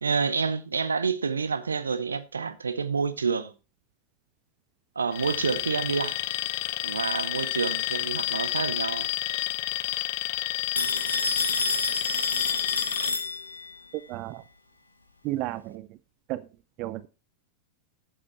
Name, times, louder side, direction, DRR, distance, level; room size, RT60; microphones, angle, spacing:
voice 1, 0.0-3.5 5.0-6.2 6.8-9.1, right 5 dB, 75° right, 0.9 m, -28 dB
Alarm, 5.1-13.1, left 17 dB, 50° left, 0.5 m, -30 dB
Telephone, 10.8-13.8, left 3 dB, 80° left, 1.1 m, -29 dB
voice 2, 14.1-14.4 15.2-15.9 16.3-16.5 16.8-17.1, right 16 dB, 40° right, 0.5 m, -32 dB
11.0 x 7.5 x 4.3 m
figure-of-eight pair, 90°, 0 cm